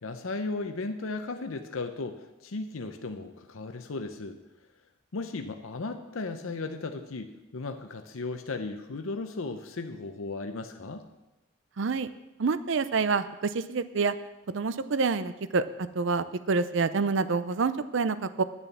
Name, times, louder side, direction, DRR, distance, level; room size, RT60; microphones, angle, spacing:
voice 1, 0.0-4.4 5.1-11.0, left 3 dB, 80° left, 6 dB, 0.7 m, -36 dB
voice 2, 11.8-12.1 12.4-14.1 14.5-15.6 16.0-18.4, right 4 dB, 65° right, 13 dB, 0.5 m, -27 dB
10.5 x 6.9 x 7.1 m, 1.0 s
head